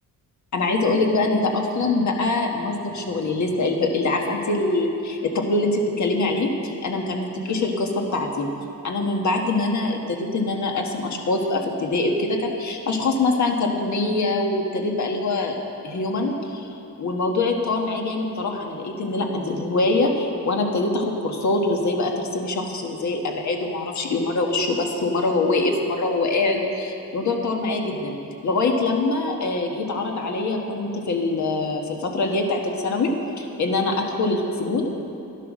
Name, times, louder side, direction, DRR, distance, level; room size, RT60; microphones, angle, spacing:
voice 1, 0.5-8.5 8.8-15.5 15.8-16.7 17.0-28.2 28.4-34.9, left 2 dB, 55° left, 2 dB, 1.5 m, -24 dB
12.0 x 10.5 x 6.2 m, 2.8 s
cardioid pair, 140°, 35 cm